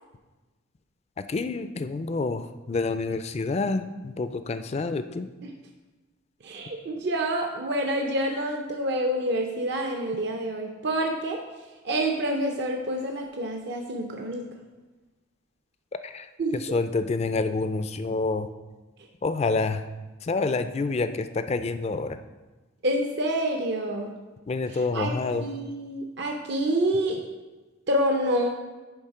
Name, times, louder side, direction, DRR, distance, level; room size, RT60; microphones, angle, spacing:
voice 1, 1.3-5.3 16.0-16.3 16.5-18.5 19.2-19.8 20.2-22.2 24.5-25.5, left 3 dB, 30° left, 10 dB, 0.3 m, -28 dB
voice 2, 6.4-11.4 11.8-14.5 16.4-16.6 22.8-24.1 24.7-27.2 27.9-28.5, right 1 dB, 60° right, 2 dB, 0.6 m, -27 dB
10.0 x 3.5 x 4.9 m, 1.2 s
head